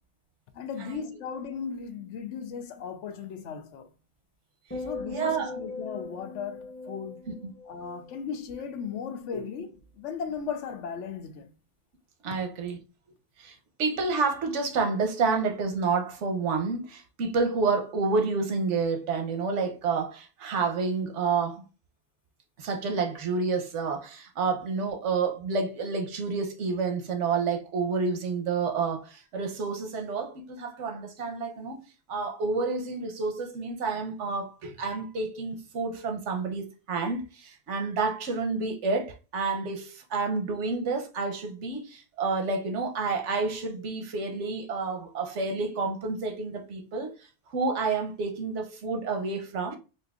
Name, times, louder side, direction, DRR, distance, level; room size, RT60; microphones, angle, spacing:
voice 1, 0.5-3.9 4.8-7.3 7.7-11.5, left 6 dB, 90° left, 0.9 m, -36 dB
sound 1, 4.7-9.1 9.4-9.8, left 3 dB, 15° left, 0.6 m, -41 dB
voice 2, 5.1-5.5 6.9-7.0 7.3-7.5 9.3-9.4 12.2-12.8 13.4-21.6 22.6-47.1 47.5-49.8, right 4 dB, 90° right, 1.1 m, -29 dB
4.3 x 2.6 x 2.4 m
omnidirectional pair, 1.2 m